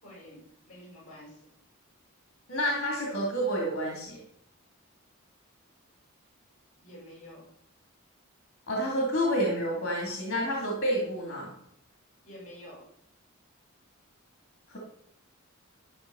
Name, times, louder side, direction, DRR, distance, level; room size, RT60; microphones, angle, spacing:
voice 1, 0.0-1.5 6.8-7.4 12.2-12.9, left 1 dB, 35° left, -2 dB, 5.6 m, -48 dB
voice 2, 2.5-4.2 8.7-11.5 14.7-14.8, equal, 50° left, -2 dB, 2.8 m, -29 dB
12.5 x 5.7 x 7.0 m, 0.72 s
head